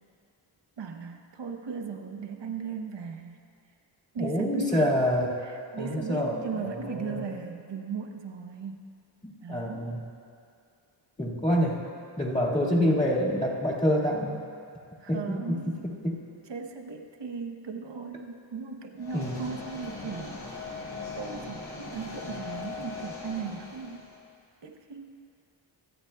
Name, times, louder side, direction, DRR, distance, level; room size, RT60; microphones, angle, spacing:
voice 1, 0.8-3.4 4.1-4.8 5.4-8.9 9.4-9.8 15.0-15.8 16.5-20.3 21.2-24.0 24.6-25.3, right 6 dB, 60° right, 4 dB, 0.9 m, -37 dB
voice 2, 4.2-5.4 5.8-7.2 9.2-10.0 11.2-11.8 12.2-14.4 15.1-15.6 15.8-16.1 19.1-19.5, equal, 15° left, -5 dB, 1.8 m, -27 dB
sound 1, 19.0-24.2, left 3 dB, 75° left, 3.0 m, -39 dB
25.5 x 8.8 x 2.2 m, 2.5 s
wide cardioid pair, 125°, 48 cm